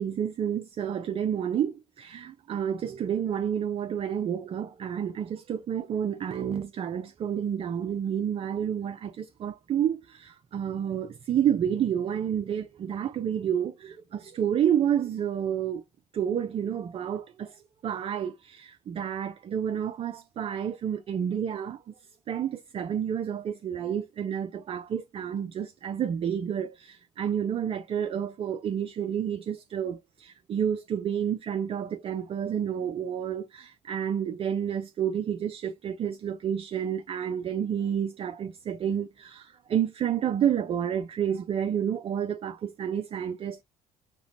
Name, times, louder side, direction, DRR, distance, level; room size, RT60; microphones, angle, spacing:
voice 1, 0.0-15.8 16.1-17.5 17.8-21.8 22.3-43.6, right 9 dB, 35° right, 0.4 m, -30 dB
4.9 x 3.0 x 2.7 m
figure-of-eight pair, 55°, 18 cm